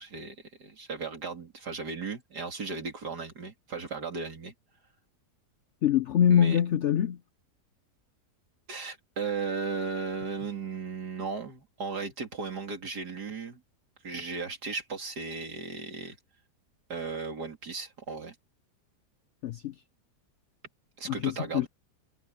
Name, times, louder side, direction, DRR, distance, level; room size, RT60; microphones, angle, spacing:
voice 1, 0.0-4.5 6.3-6.6 8.7-13.6 14.0-16.2 16.9-18.4 21.0-21.7, right 4 dB, 70° right, 3.7 m, -36 dB
voice 2, 5.8-7.2 19.4-19.7 21.1-21.7, left 9 dB, 70° left, 0.7 m, -24 dB
omnidirectional pair, 1.8 m